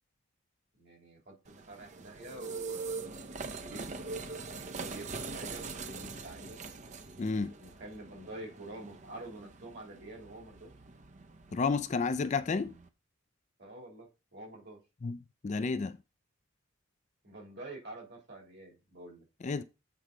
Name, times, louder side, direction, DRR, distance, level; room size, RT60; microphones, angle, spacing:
voice 1, 0.8-4.5 4.7-6.6 7.6-10.7 13.6-14.8 17.2-19.3, right 2 dB, 55° right, 2.8 m, -48 dB
sound 1, 1.5-12.9, right 4 dB, 35° right, 0.7 m, -43 dB
voice 2, 7.2-7.5 11.5-12.7 15.0-16.0 19.4-19.6, left 4 dB, 35° left, 0.4 m, -31 dB
8.2 x 4.6 x 3.7 m
head